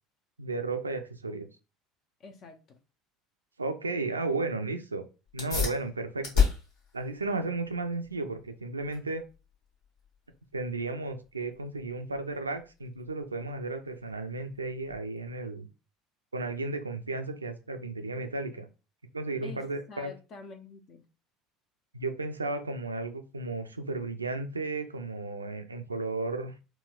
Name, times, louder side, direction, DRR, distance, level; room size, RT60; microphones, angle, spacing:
voice 1, 0.4-1.5 3.6-5.0 5.3-6.4 6.9-9.2 10.5-15.7 16.3-18.7 19.1-20.1 21.9-26.5, right 3 dB, 85° right, 0.3 m, -34 dB
voice 2, 2.2-2.8 19.4-21.0, left 3 dB, 45° left, 0.5 m, -48 dB
sound 1, 5.3-15.3, left 6 dB, 60° left, 1.2 m, -35 dB
4.0 x 2.1 x 2.3 m
figure-of-eight pair, 65°, 0 cm